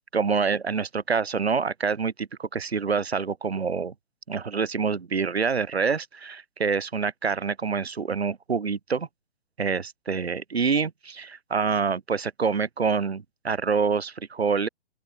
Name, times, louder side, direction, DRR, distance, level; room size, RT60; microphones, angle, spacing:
voice 1, 0.1-3.9 4.3-9.1 9.6-14.7, right 5 dB, 75° right, 1.6 m, -26 dB
open air
figure-of-eight pair, 130°, 33 cm